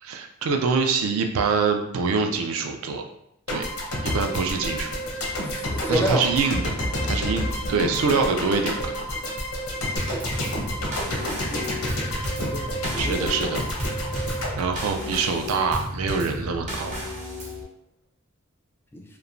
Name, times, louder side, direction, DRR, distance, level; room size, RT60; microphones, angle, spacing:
voice 1, 0.0-3.0 3.5-3.7 4.0-4.9 5.9-6.8 7.0-8.9 13.0-13.6 14.6-17.1, right 5 dB, 70° right, 5 dB, 0.4 m, -25 dB
sound 1, 3.5-15.7, left 1 dB, 90° left, 0.7 m, -29 dB
voice 2, 5.7-6.2 11.4-11.9 12.4-13.4 18.9-19.0, equal, 10° left, 1 dB, 0.3 m, -29 dB
Drum kit / Snare drum / Bass drum, 10.0-17.6, left 1 dB, 35° right, 0.6 m, -33 dB
2.9 x 2.1 x 2.5 m, 0.78 s
head